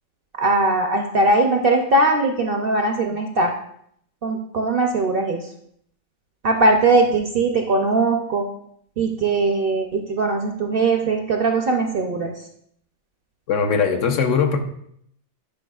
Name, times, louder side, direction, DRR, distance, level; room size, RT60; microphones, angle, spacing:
voice 1, 0.4-3.5 4.2-5.4 6.4-8.4 9.0-12.3, right 2 dB, 60° right, 3 dB, 0.6 m, -20 dB
voice 2, 13.5-14.6, left 6 dB, 70° left, 5 dB, 1.0 m, -20 dB
10.5 x 4.7 x 2.3 m, 0.68 s
omnidirectional pair, 1.4 m